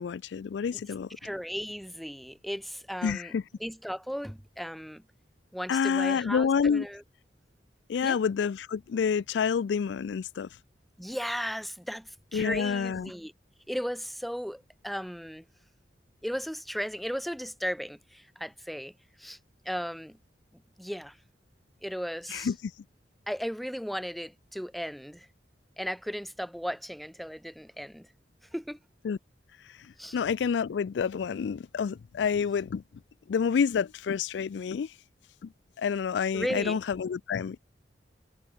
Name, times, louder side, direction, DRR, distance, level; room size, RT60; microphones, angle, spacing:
voice 1, 0.0-1.1 3.0-3.4 5.7-6.9 7.9-10.5 12.3-13.1 22.3-22.7 29.0-29.2 29.6-32.8 33.3-34.9 35.4-35.5 35.8-37.6, left 6 dB, 80° left, 0.4 m, -28 dB
voice 2, 1.2-3.3 3.6-5.0 5.5-7.0 8.0-8.2 11.0-13.3 13.7-15.4 16.2-18.9 19.2-19.4 19.6-20.2 20.8-21.2 21.8-22.5 23.3-25.3 25.8-28.1 28.5-28.8 30.0-30.2 36.3-36.8, equal, ahead, 1.2 m, -36 dB
head